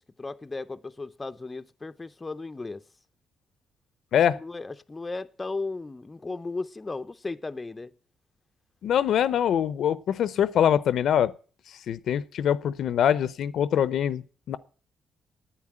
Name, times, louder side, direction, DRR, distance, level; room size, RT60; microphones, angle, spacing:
voice 1, 0.0-2.8 4.4-7.9, left 3 dB, 20° left, 0.6 m, -35 dB
voice 2, 8.8-11.3 11.9-14.6, left 9 dB, 70° left, 0.6 m, -24 dB
9.9 x 9.3 x 8.7 m
cardioid pair, 100°, 0 cm